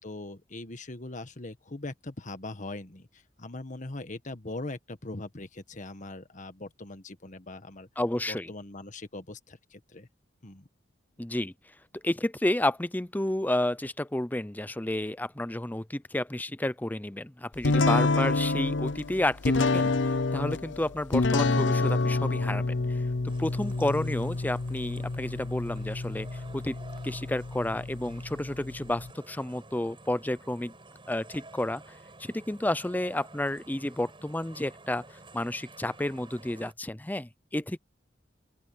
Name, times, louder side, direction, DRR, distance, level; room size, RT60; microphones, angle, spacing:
voice 1, 0.0-7.9 8.3-10.1 10.4-10.7, left 2 dB, 45° left, 1.6 m, -41 dB
voice 2, 8.0-8.5 11.2-11.5 11.9-23.0 23.4-26.8 27.0-30.7 31.1-31.8 32.2-35.0 35.3-37.8, left 1 dB, 10° left, 0.6 m, -31 dB
sound 1, 17.6-29.1, left 3 dB, 80° left, 0.7 m, -28 dB
sound 2, 23.3-36.7, right 2 dB, 30° right, 6.2 m, -51 dB
open air
head